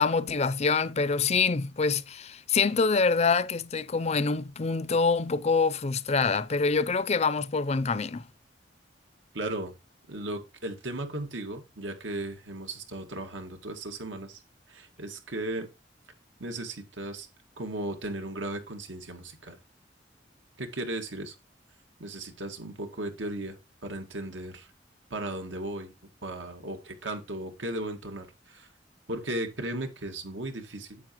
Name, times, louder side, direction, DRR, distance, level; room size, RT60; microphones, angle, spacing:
voice 1, 0.0-8.3, left 4 dB, 35° left, 0.5 m, -25 dB
voice 2, 9.3-9.7 10.1-14.4 14.7-15.7 16.4-17.3 17.6-19.6 20.6-21.3 22.0-24.7 25.1-25.9 26.2-28.7 29.1-31.0, right 1 dB, 85° right, 2.0 m, -36 dB
9.4 x 8.0 x 3.0 m
head